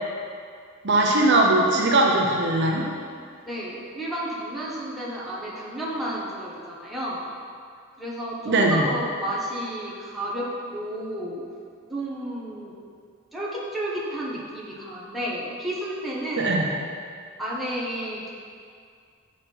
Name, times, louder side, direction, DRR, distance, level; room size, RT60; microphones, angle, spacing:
voice 1, 0.8-2.9 8.5-8.8 16.4-16.7, right 2 dB, 55° right, -1 dB, 0.8 m, -20 dB
voice 2, 3.4-7.2 8.0-11.4 11.9-12.7 13.3-16.6 17.4-18.3, right 1 dB, ahead, -7 dB, 1.3 m, -31 dB
7.8 x 5.8 x 4.6 m, 2.2 s
head